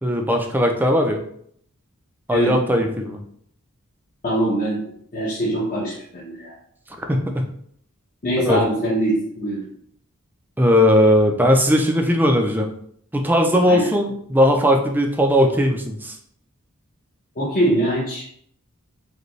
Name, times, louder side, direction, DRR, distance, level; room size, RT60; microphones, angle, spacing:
voice 1, 0.0-1.2 2.3-3.2 7.0-7.4 8.4-8.6 10.6-12.7 13.1-16.2, equal, 10° right, 3 dB, 0.4 m, -18 dB
voice 2, 4.2-4.8 5.1-6.5 8.2-9.6 13.6-13.9 17.4-18.2, right 1 dB, 40° left, -8 dB, 1.0 m, -22 dB
5.0 x 2.3 x 3.1 m, 0.65 s
head